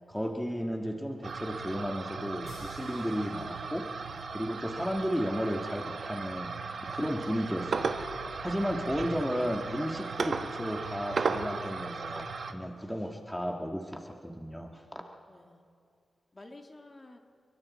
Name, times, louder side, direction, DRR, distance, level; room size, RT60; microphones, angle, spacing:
voice 1, 0.1-3.9 4.3-6.5 6.8-15.0, equal, 5° left, 2 dB, 1.6 m, -34 dB
sound 1, 1.2-12.5, right 4 dB, 65° right, 1.1 m, -36 dB
sound 2, 2.5-4.6, left 3 dB, 80° left, 4.0 m, -55 dB
voice 2, 15.3-15.6 16.3-17.2, left 2 dB, 30° left, 4 dB, 1.9 m, -52 dB
28.5 x 23.0 x 4.2 m, 2.3 s
cardioid pair, 80°, 0 cm